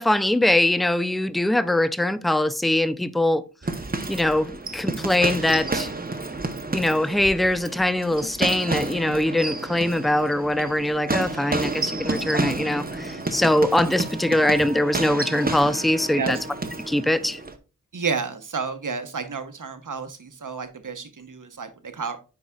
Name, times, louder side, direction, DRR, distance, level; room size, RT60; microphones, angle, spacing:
voice 1, 0.0-3.4 4.1-5.9 6.7-16.4 16.9-17.4, left 1 dB, ahead, 0.4 m, -22 dB
sound 1, 3.6-17.6, right 3 dB, 30° right, 0.8 m, -30 dB
Wind instrument woodwind instrument, 13.2-17.4, left 1 dB, 60° left, 3.0 m, -40 dB
voice 2, 17.9-22.2, right 5 dB, 75° right, 1.0 m, -31 dB
9.7 x 4.6 x 2.3 m
wide cardioid pair, 45°, 32 cm